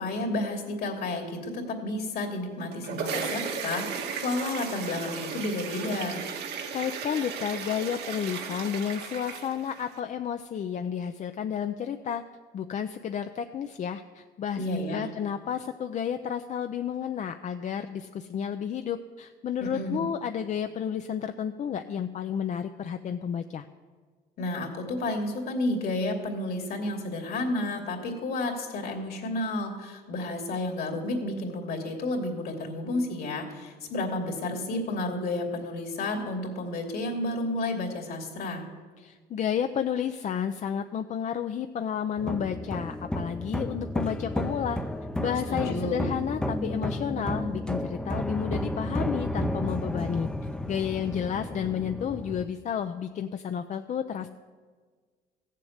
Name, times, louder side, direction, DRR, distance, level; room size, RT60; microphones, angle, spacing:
voice 1, 0.0-6.2 14.6-15.1 19.6-20.1 24.4-38.6 45.5-46.1, left 2 dB, 65° left, 2 dB, 2.8 m, -31 dB
sound 1, 2.5-10.0, right 6 dB, 75° right, 1.6 m, -35 dB
voice 2, 6.7-12.2 12.5-23.7 39.0-44.8 45.2-50.3 50.7-54.3, left 8 dB, 45° left, 7 dB, 0.6 m, -31 dB
sound 2, 42.2-52.5, left 1 dB, 5° left, 0.6 m, -32 dB
15.5 x 7.5 x 8.1 m, 1.5 s
cardioid pair, 110°, 17 cm